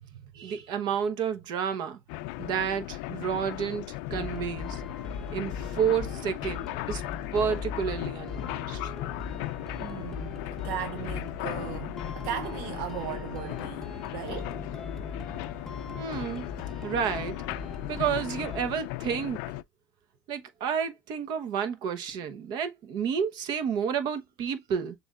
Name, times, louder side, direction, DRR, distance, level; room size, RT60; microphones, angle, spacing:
voice 1, 0.3-2.0 2.4-3.8 4.1-4.8 5.3-7.0 7.3-8.9 15.9-16.5 16.8-17.4 17.9-19.4 20.3-24.9, right 7 dB, 45° right, 1.0 m, -30 dB
sound 1, 2.1-19.6, left 17 dB, 65° left, 0.4 m, -37 dB
sound 2, 4.1-18.7, left 4 dB, 5° left, 0.8 m, -40 dB
voice 2, 9.8-14.6, right 11 dB, 65° right, 0.5 m, -37 dB
7.0 x 2.5 x 2.4 m
cardioid pair, 150°, 10 cm